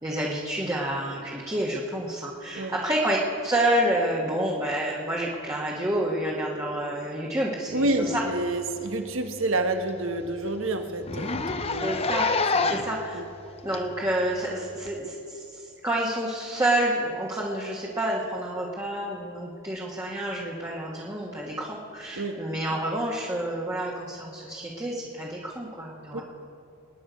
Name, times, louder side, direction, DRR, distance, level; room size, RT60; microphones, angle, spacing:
voice 1, 0.0-3.2 3.4-8.1 11.8-12.3 12.6-13.2 13.6-26.2, right 1 dB, 15° right, -4 dB, 1.4 m, -29 dB
voice 2, 7.7-11.9 12.5-12.8 13.1-13.2 22.2-22.4 26.1-26.2, right 2 dB, 65° right, 6 dB, 1.2 m, -29 dB
Zipper (clothing), 8.4-8.6 8.9-9.0 9.4-9.5 9.9-10.0 10.2-10.4 11.0-13.0 13.7-13.8 14.9-15.0, left 4 dB, 25° left, 0.6 m, -27 dB
25.5 x 9.9 x 5.1 m, 2.6 s
head